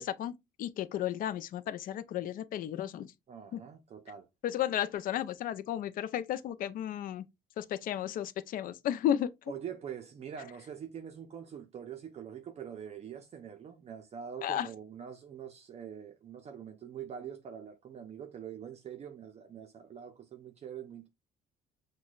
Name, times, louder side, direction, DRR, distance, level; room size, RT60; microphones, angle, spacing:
voice 1, 0.0-3.1 3.5-3.6 4.4-7.3 7.6-9.3 14.4-14.7, left 11 dB, 55° left, 0.4 m, -33 dB
voice 2, 3.3-4.3 9.5-21.1, right 8 dB, 40° right, 0.5 m, -44 dB
6.0 x 2.2 x 2.3 m
cardioid pair, 110°, 17 cm